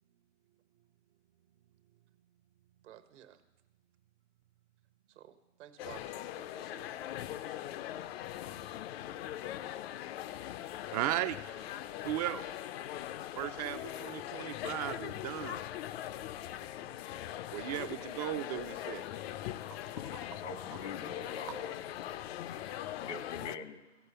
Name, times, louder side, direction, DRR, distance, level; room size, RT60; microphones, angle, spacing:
voice 1, 2.8-3.4 5.1-7.1 7.4-7.7, right 11 dB, 75° right, 8 dB, 1.3 m, -55 dB
sound 1, 5.8-23.6, left 12 dB, 60° left, 0.5 m, -41 dB
voice 2, 10.9-11.4 12.0-12.5 13.4-15.6 16.8-17.0 17.5-19.0 20.1-20.3, right 13 dB, 35° right, 11 dB, 0.4 m, -36 dB
voice 3, 20.3-21.8 23.0-23.8, left 4 dB, 80° left, 8 dB, 1.6 m, -43 dB
15.5 x 5.3 x 6.7 m, 1.0 s
hypercardioid pair, 135°, 35 cm